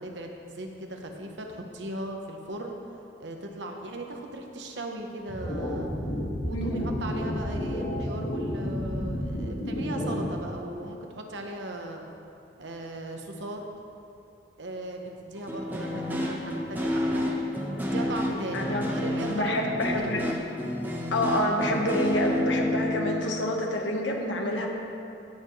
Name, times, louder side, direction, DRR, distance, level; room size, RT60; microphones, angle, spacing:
voice 1, 0.0-2.8 3.2-5.9 6.4-12.0 12.6-13.6 14.6-17.3 17.8-19.5 20.2-20.3, right 1 dB, 70° right, 2 dB, 1.0 m, -38 dB
sound 1, 5.3-10.3, equal, 60° left, 2.0 m, -31 dB
voice 2, 6.5-6.9 18.5-18.9 19.3-20.2 21.1-24.7, left 1 dB, 85° left, 1 dB, 1.3 m, -27 dB
sound 2, 15.4-23.3, left 1 dB, 10° right, 1.0 m, -30 dB
16.5 x 6.9 x 3.2 m, 2.7 s
head